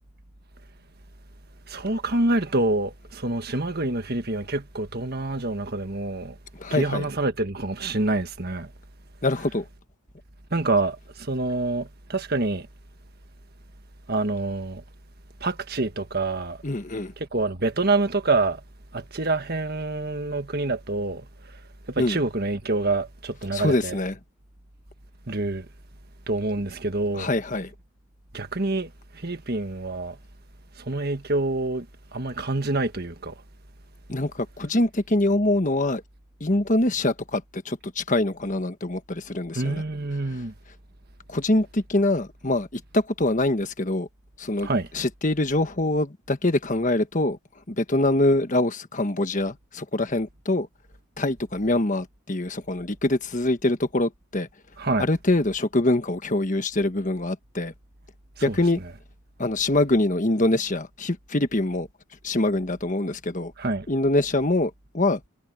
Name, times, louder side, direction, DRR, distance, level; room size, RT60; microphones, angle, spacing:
voice 1, 1.7-6.4 6.7-8.7 10.5-12.7 14.1-14.8 15.4-16.6 17.2-18.6 18.9-21.2 21.9-24.0 25.3-25.7 26.3-27.3 28.3-30.2 30.8-31.8 32.1-33.3 39.5-40.5 44.6-44.9 54.8-55.0 58.5-58.6 63.6-63.9, right 2 dB, 45° right, 1.6 m, -26 dB
voice 2, 6.6-7.1 9.2-9.6 16.6-17.1 22.0-22.2 23.5-24.2 27.1-27.7 34.1-36.0 36.4-39.8 41.3-44.1 44.4-47.4 47.7-50.7 51.2-54.5 55.0-57.7 58.4-58.8 59.4-61.9 62.2-63.5 63.9-65.2, left 2 dB, 35° left, 1.4 m, -24 dB
head